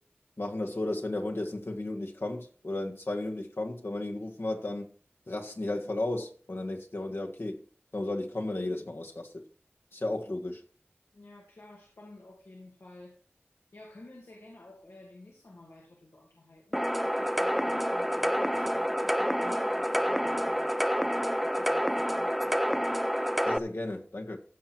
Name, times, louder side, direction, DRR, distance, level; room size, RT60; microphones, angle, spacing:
voice 1, 0.4-4.9 5.3-7.6 7.9-9.4 9.9-10.6 23.5-24.4, left 2 dB, 65° left, 1.8 m, -34 dB
voice 2, 11.1-13.2 13.7-20.7 21.4-22.6, left 2 dB, 85° left, 2.7 m, -51 dB
sound 1, 16.7-23.6, equal, ahead, 0.6 m, -28 dB
15.5 x 5.9 x 4.6 m
wide cardioid pair, 40°, 4 cm